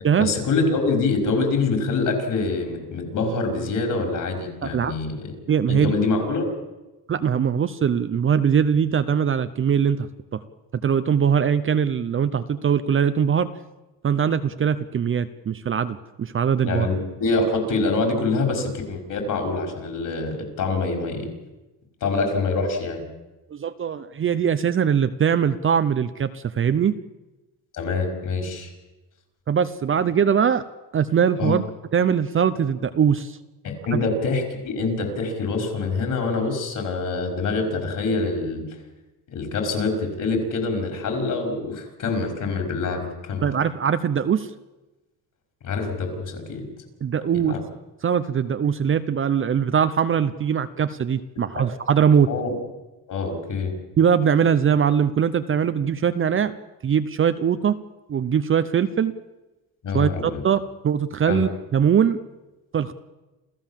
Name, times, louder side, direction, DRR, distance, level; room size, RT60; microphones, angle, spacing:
voice 1, 0.2-5.3 5.7-6.4 16.6-21.3 22.0-23.0 27.7-28.7 31.4-31.6 33.6-38.6 39.3-43.5 45.6-46.6 47.4-47.6 52.3-52.5 53.1-53.7 59.8-60.4 61.3-61.5, left 3 dB, 50° left, 4 dB, 5.7 m, -25 dB
voice 2, 4.6-5.0 5.5-5.9 7.1-10.4 10.8-13.5 14.0-16.9 23.5-26.9 29.5-30.6 30.9-31.6 31.9-33.4 33.9-34.0 43.4-44.5 47.0-47.6 48.0-52.3 54.0-56.5 56.8-57.8 58.1-59.1 59.9-62.2 62.7-62.9, right 7 dB, 30° right, 11 dB, 0.8 m, -21 dB
28.0 x 15.0 x 7.5 m, 1.1 s
cardioid pair, 125°, 41 cm